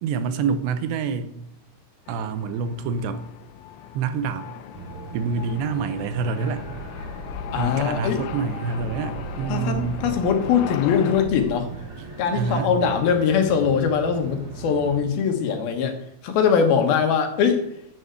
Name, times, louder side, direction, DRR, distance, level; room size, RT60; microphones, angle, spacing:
voice 1, 0.0-1.4 2.1-3.2 3.9-4.5 5.1-6.6 7.6-10.0 12.0-12.1 12.4-12.7, right 5 dB, 85° right, 11 dB, 3.1 m, -27 dB
sound 1, 2.1-11.3, left 10 dB, 90° left, 3.0 m, -38 dB
sound 2, 4.7-15.0, right 3 dB, 35° right, 5.2 m, -38 dB
voice 2, 7.5-8.2 9.5-9.8 10.0-11.7 12.2-15.9 16.2-17.6, left 7 dB, 65° left, 5 dB, 3.1 m, -21 dB
11.0 x 7.9 x 8.1 m, 0.79 s
omnidirectional pair, 4.9 m